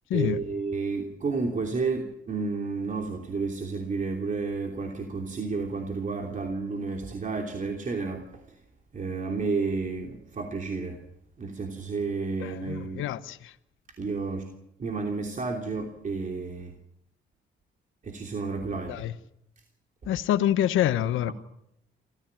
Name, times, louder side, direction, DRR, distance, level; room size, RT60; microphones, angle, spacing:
voice 1, 0.1-8.6 8.9-11.0 11.4-13.0 14.0-16.7 18.0-19.0 20.0-20.1, right 4 dB, 40° right, 3.1 m, -31 dB
voice 2, 12.4-13.5 18.9-19.1 20.1-21.3, left 12 dB, 85° left, 1.0 m, -26 dB
27.0 x 15.0 x 8.9 m
cardioid pair, 90°, 20 cm